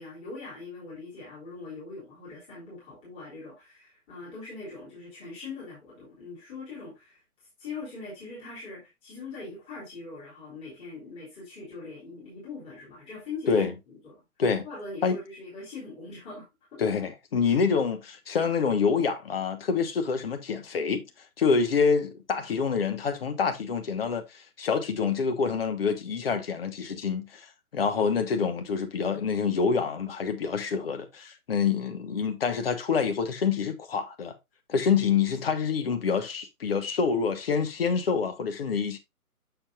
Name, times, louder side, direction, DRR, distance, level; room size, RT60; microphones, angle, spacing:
voice 1, 0.0-7.2 7.6-14.2 14.6-16.5 16.7-16.8, left 3 dB, 10° left, 3.7 m, -42 dB
voice 2, 16.8-21.0 21.4-27.5 27.7-34.4 34.7-39.0, left 5 dB, 40° left, 1.1 m, -26 dB
7.2 x 6.9 x 2.4 m
figure-of-eight pair, 140°, 45 cm